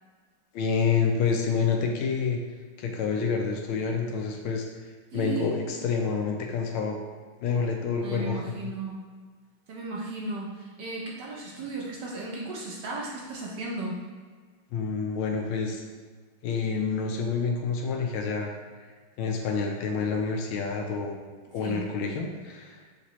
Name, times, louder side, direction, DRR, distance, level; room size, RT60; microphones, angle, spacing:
voice 1, 0.5-2.4 2.8-4.6 5.1-7.0 7.4-8.4 14.7-15.8 16.4-18.5 19.2-21.2 21.5-22.8, left 5 dB, 85° left, 2 dB, 1.5 m, -28 dB
voice 2, 5.1-5.5 8.0-9.0 9.7-14.0 21.5-21.8, right 3 dB, 65° right, -3 dB, 1.2 m, -35 dB
6.0 x 2.8 x 3.0 m, 1.5 s
omnidirectional pair, 2.3 m